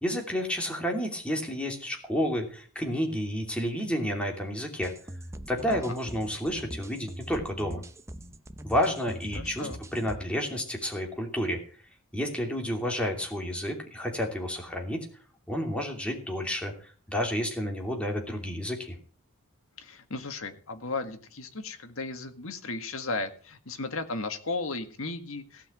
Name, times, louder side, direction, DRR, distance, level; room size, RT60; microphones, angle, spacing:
voice 1, 0.0-4.9 5.5-7.8 8.6-11.6 12.1-15.1 15.5-19.0, equal, 5° left, 1 dB, 2.9 m, -30 dB
sound 1, 4.8-10.2, right 1 dB, 15° right, 0.7 m, -42 dB
voice 2, 9.3-9.8 19.8-25.7, left 3 dB, 65° left, 8 dB, 1.8 m, -35 dB
17.0 x 5.8 x 8.9 m, 0.43 s
head